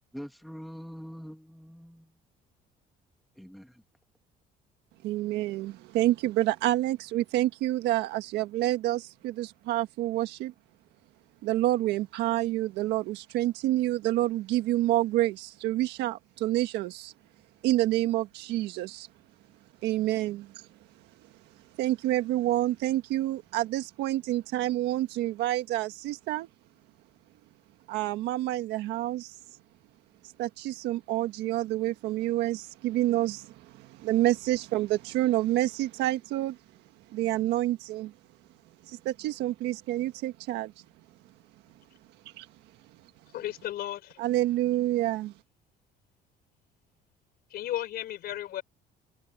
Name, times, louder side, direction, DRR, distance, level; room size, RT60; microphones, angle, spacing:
voice 1, 0.1-2.1 3.4-3.8, equal, ahead, 1.8 m, -44 dB
voice 2, 5.0-10.5 11.4-17.1 17.6-19.1 19.8-20.7 21.8-26.5 27.9-29.3 30.4-36.6 37.1-38.1 38.9-40.7 42.4-42.5 44.2-45.3, right 15 dB, 90° right, 1.5 m, -28 dB
voice 3, 43.3-44.2 47.5-48.6, left 13 dB, 70° left, 3.8 m, -34 dB
cardioid pair, 110°, 17 cm